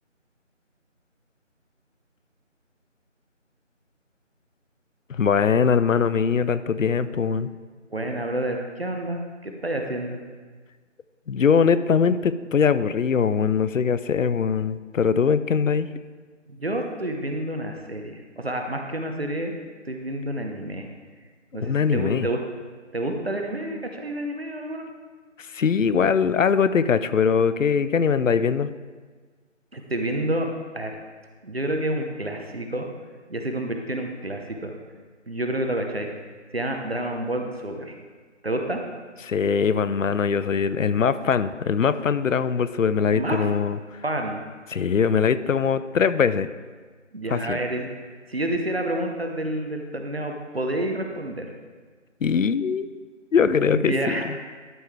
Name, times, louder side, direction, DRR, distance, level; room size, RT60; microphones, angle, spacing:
voice 1, 5.1-7.5 11.3-15.9 21.6-22.3 25.4-28.7 39.2-43.8 44.7-46.5 47.3-47.6 52.2-52.9 53.3-54.1, left 6 dB, 90° left, 14 dB, 0.5 m, -21 dB
voice 2, 7.9-10.2 16.5-19.5 19.9-20.9 21.5-22.4 22.9-24.9 29.7-30.5 30.7-31.0 31.4-32.9 33.3-34.7 35.3-36.1 36.5-38.0 38.4-38.8 43.1-43.5 44.0-44.4 47.1-47.9 48.3-51.5 53.7-54.3, right 1 dB, 55° right, 3 dB, 0.9 m, -29 dB
12.0 x 5.3 x 3.3 m, 1.5 s
figure-of-eight pair, 175°, 37 cm